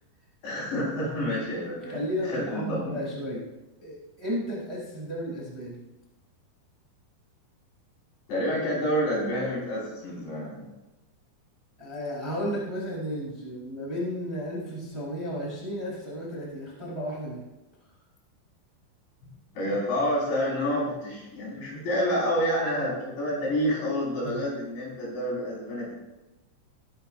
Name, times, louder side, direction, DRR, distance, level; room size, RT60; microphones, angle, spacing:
voice 1, 0.4-3.0 8.3-10.7 19.5-25.9, equal, 70° left, -6 dB, 7.5 m, -28 dB
voice 2, 1.9-3.4 3.8-5.8 11.8-17.4 24.2-24.4, equal, 5° right, -5 dB, 3.1 m, -33 dB
20.5 x 11.0 x 2.6 m, 1.0 s
omnidirectional pair, 5.1 m